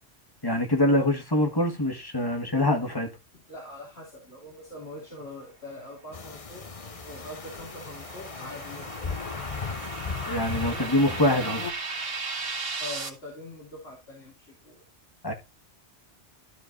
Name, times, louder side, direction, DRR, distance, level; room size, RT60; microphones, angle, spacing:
voice 1, 0.4-3.1 10.3-11.7 15.2-15.3, left 1 dB, 20° left, 1.8 m, -24 dB
voice 2, 3.5-6.7 7.0-9.0 12.8-14.8, left 1 dB, 60° left, 3.2 m, -43 dB
sound 1, 6.1-11.7, left 5 dB, 35° left, 0.7 m, -36 dB
sound 2, 6.3-13.1, right 4 dB, 55° right, 1.7 m, -37 dB
13.0 x 4.5 x 4.0 m
omnidirectional pair, 1.2 m